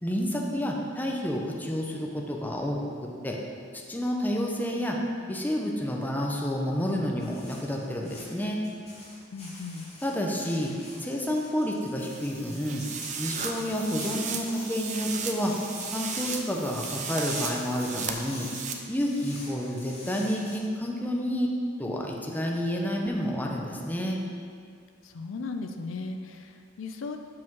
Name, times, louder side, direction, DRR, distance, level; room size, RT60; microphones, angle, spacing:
voice 1, 0.0-3.4 3.9-5.0 5.3-8.6 10.0-10.7 11.0-12.9 13.2-15.5 15.9-18.5 18.9-21.5 21.8-24.2, equal, 10° left, -1 dB, 0.7 m, -29 dB
sound 1, 7.2-20.6, left 2 dB, 35° left, 1.7 m, -45 dB
voice 2, 9.3-9.9 25.0-27.2, left 3 dB, 75° left, 6 dB, 0.5 m, -37 dB
sound 2, 12.0-18.7, right 6 dB, 40° right, 0.5 m, -36 dB
5.8 x 5.0 x 6.0 m, 2.2 s
head